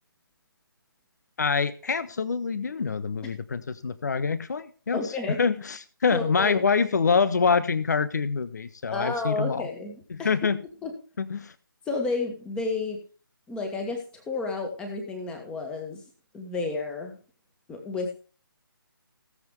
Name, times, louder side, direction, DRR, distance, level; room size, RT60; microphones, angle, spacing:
voice 1, 1.4-5.0 5.4-9.7 10.1-10.6 11.2-11.5, left 5 dB, 50° left, 15 dB, 1.3 m, -25 dB
voice 2, 4.9-5.4 6.1-6.5 8.9-10.3 10.8-10.9 11.9-13.0 13.5-16.0 16.3-17.2 17.7-18.1, left 3 dB, 10° left, 4 dB, 2.0 m, -31 dB
18.5 x 7.8 x 3.4 m, 0.38 s
figure-of-eight pair, 145°, 12 cm